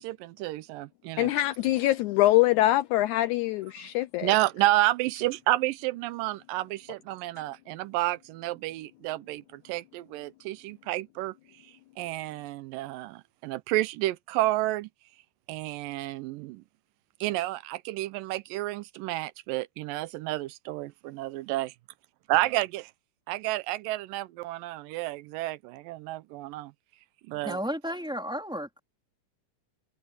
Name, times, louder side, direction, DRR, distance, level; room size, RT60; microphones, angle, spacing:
voice 1, 0.0-1.3 4.2-11.4 12.0-14.9 15.5-16.6 17.2-21.7 22.3-22.8 23.3-26.7 27.3-27.6, right 17 dB, 90° right, 2.3 m, -30 dB
voice 2, 1.2-4.3, left 16 dB, 85° left, 1.7 m, -24 dB
voice 3, 27.4-28.8, equal, ahead, 3.4 m, -33 dB
omnidirectional pair, 3.9 m